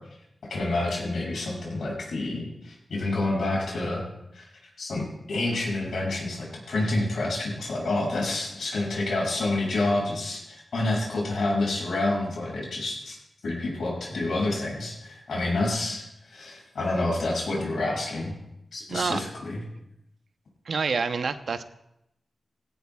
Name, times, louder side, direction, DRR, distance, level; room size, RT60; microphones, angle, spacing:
voice 1, 0.5-4.0 4.3-4.4 4.8-13.2 13.4-18.3 18.7-19.6, left 2 dB, 90° left, -3 dB, 6.7 m, -28 dB
voice 2, 18.9-19.2 20.6-21.6, right 5 dB, 75° right, 9 dB, 0.8 m, -27 dB
18.5 x 17.0 x 2.4 m, 0.82 s
wide cardioid pair, 100°, 0 cm